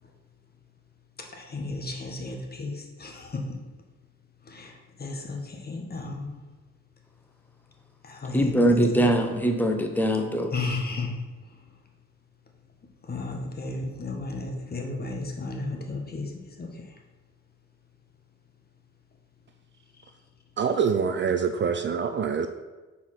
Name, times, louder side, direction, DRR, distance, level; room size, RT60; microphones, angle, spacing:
voice 1, 1.2-3.6 4.4-6.4 8.0-8.6 9.0-9.1 10.5-11.6 13.0-17.0, left 3 dB, 30° left, 2 dB, 1.2 m, -34 dB
voice 2, 8.3-10.5, right 1 dB, 5° left, 4 dB, 0.8 m, -22 dB
voice 3, 20.6-22.5, right 6 dB, 40° right, 8 dB, 0.4 m, -25 dB
4.6 x 4.2 x 5.7 m, 1.2 s
cardioid pair, 90°, 30 cm